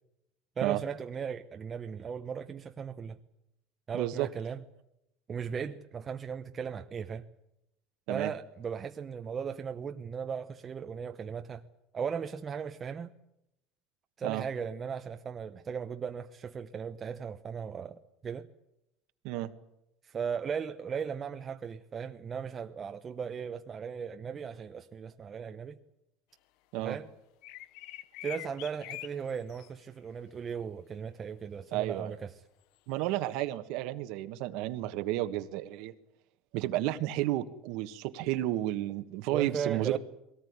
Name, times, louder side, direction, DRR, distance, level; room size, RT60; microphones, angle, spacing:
voice 1, 0.6-3.2 3.9-4.6 5.3-7.3 8.1-11.6 11.9-13.1 14.2-18.5 20.0-25.8 26.7-27.1 28.2-32.4 39.3-40.0, right 6 dB, 30° right, 1.0 m, -37 dB
voice 2, 3.9-4.3 8.1-8.3 14.2-14.4 19.2-19.5 26.7-27.0 31.7-32.1 32.9-35.9 36.5-40.0, right 15 dB, 70° right, 1.5 m, -32 dB
sound 1, 27.4-29.7 33.0-33.4, left 16 dB, 70° left, 0.9 m, -45 dB
22.0 x 18.0 x 9.7 m
supercardioid pair, 125°, 0 cm